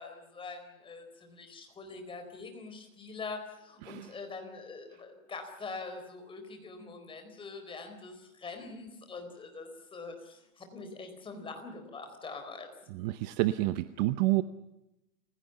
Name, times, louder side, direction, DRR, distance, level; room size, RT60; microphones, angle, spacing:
voice 1, 0.0-12.7, left 4 dB, 10° left, 5 dB, 4.3 m, -44 dB
voice 2, 3.8-4.1 12.9-14.4, right 18 dB, 30° right, 13 dB, 0.7 m, -29 dB
29.5 x 17.0 x 6.9 m, 0.90 s
hypercardioid pair, 145°, 42 cm